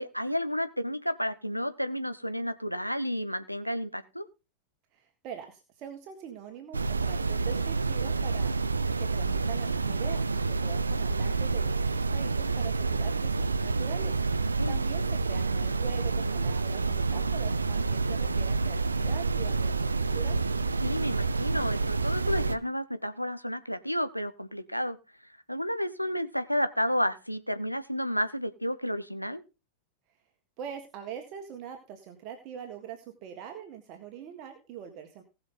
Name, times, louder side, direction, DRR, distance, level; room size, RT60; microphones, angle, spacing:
voice 1, 0.0-4.2 14.6-14.8 20.8-25.0 25.5-29.4, equal, 90° left, 11 dB, 1.0 m, -31 dB
voice 2, 4.9-20.4 30.6-35.2, right 8 dB, 40° right, 4 dB, 1.7 m, -43 dB
sound 1, 6.7-22.6, right 4 dB, 80° right, 0.5 m, -28 dB
18.5 x 6.3 x 3.9 m, 0.30 s
figure-of-eight pair, 90°, 0 cm